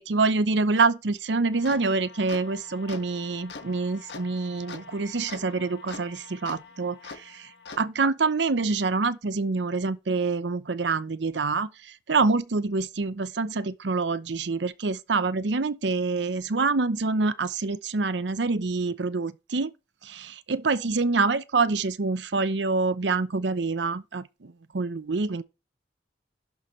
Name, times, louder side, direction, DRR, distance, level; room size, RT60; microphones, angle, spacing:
voice 1, 0.0-7.5 7.8-11.7 12.1-19.7 20.0-25.4, right 3 dB, 75° right, 0.7 m, -26 dB
sound 1, 1.5-7.8, left 4 dB, 75° left, 1.5 m, -44 dB
11.5 x 6.1 x 3.2 m
head